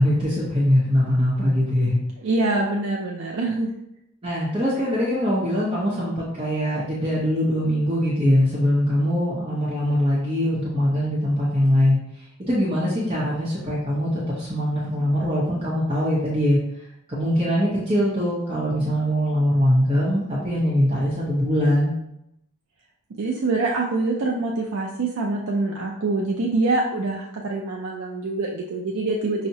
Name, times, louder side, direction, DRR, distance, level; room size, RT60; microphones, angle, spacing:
voice 1, 0.0-2.0 4.2-12.0 12.4-16.6 17.1-21.9, equal, 25° right, -8 dB, 0.7 m, -22 dB
voice 2, 2.2-3.7 23.2-29.5, right 2 dB, 70° right, -2 dB, 0.4 m, -25 dB
5.5 x 2.1 x 2.7 m, 0.80 s
head